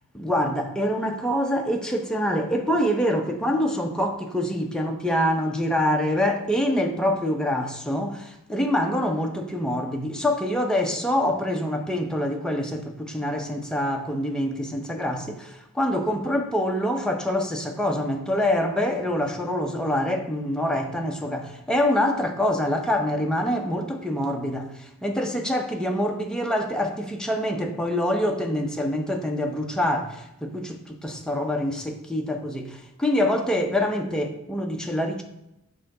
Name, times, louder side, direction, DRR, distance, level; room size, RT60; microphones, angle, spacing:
voice 1, 0.1-35.2, left 1 dB, 5° left, 0.7 m, -25 dB
6.8 x 3.8 x 5.3 m
head